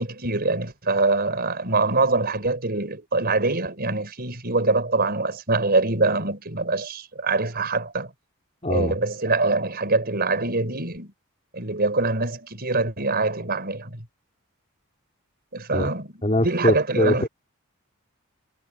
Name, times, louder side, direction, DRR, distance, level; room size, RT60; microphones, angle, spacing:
voice 1, 0.0-8.1 8.7-11.1 11.5-14.0 15.5-17.3, right 3 dB, 45° right, 5.1 m, -24 dB
voice 2, 8.6-9.0 15.7-15.9 16.2-17.3, left 1 dB, 30° left, 3.9 m, -22 dB
head